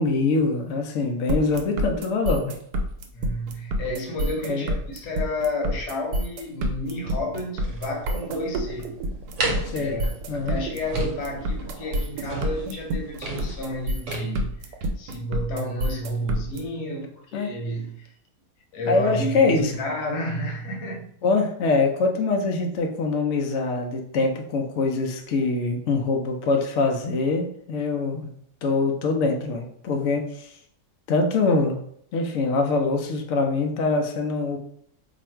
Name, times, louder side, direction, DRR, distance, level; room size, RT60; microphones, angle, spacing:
voice 1, 0.0-2.6 4.4-4.7 9.7-10.0 10.3-10.6 17.3-17.5 18.9-19.7 21.2-28.3 28.6-30.5 31.1-31.8 32.1-34.6, left 3 dB, 65° left, 3 dB, 0.8 m, -24 dB
sound 1, 1.3-16.6, right 1 dB, 80° right, 1.1 m, -28 dB
voice 2, 3.1-8.9 9.7-18.1 18.7-21.1, left 1 dB, 85° left, 1 dB, 1.3 m, -31 dB
sound 2, 7.6-14.2, right 2 dB, 60° right, 1.0 m, -34 dB
2.8 x 2.5 x 4.3 m, 0.66 s
omnidirectional pair, 1.7 m